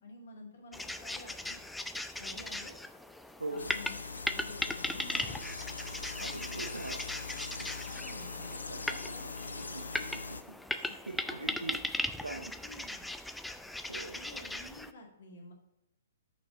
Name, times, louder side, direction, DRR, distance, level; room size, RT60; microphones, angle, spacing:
voice 1, 0.0-1.6 2.2-2.7 3.5-4.0 4.2-5.5 6.2-6.4 7.8-8.5 9.1-9.6 10.0-10.1 10.9-11.0 11.2-11.8 12.3-13.0 14.1-15.5, left 2 dB, 60° left, 1 dB, 1.9 m, -50 dB
sound 1, 0.7-14.9, left 1 dB, 5° left, 0.3 m, -38 dB
sound 2, 3.6-10.4, left 4 dB, 85° left, 0.5 m, -42 dB
voice 2, 6.2-7.2 7.6-7.8 8.7-9.0 10.8-11.8 12.2-12.5 13.9-14.2, right 2 dB, 85° right, 2 dB, 0.7 m, -42 dB
5.8 x 4.5 x 4.9 m, 0.87 s
figure-of-eight pair, 120°, 0 cm